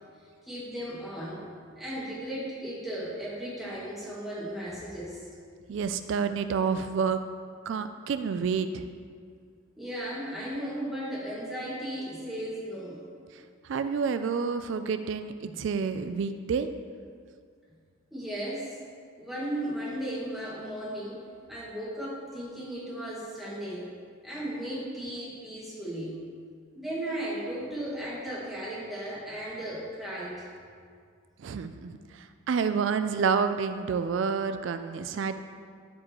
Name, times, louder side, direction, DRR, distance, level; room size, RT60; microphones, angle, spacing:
voice 1, 0.4-1.4 1.8-5.3 9.8-13.0 15.4-15.6 18.1-18.8 19.2-21.2 21.5-23.9 24.2-26.2 26.7-30.5, right 1 dB, ahead, -9 dB, 1.9 m, -36 dB
voice 2, 5.7-7.2 7.7-8.9 13.6-16.7 31.4-35.3, right 6 dB, 60° right, 10 dB, 0.3 m, -29 dB
12.5 x 5.2 x 3.0 m, 2.1 s
head